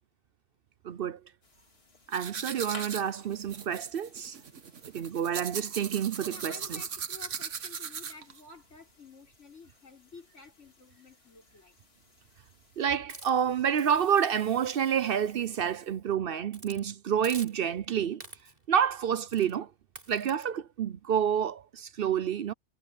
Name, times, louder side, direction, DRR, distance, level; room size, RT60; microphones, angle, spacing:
voice 1, 0.8-1.2 2.1-4.4 4.9-6.8 12.8-18.2 18.7-19.7 20.1-22.5, right 8 dB, 60° right, 0.7 m, -29 dB
sound 1, 1.4-12.9, left 3 dB, 55° left, 2.6 m, -56 dB
sound 2, 2.1-8.4, right 7 dB, 85° right, 1.5 m, -39 dB
voice 2, 6.3-11.8, left 4 dB, 80° left, 4.8 m, -52 dB
Hiss, 13.1-16.0 16.5-16.8 17.2-17.8 18.2-18.7 19.3-19.6 20.0-20.4, right 1 dB, 35° right, 5.5 m, -49 dB
omnidirectional pair, 1.2 m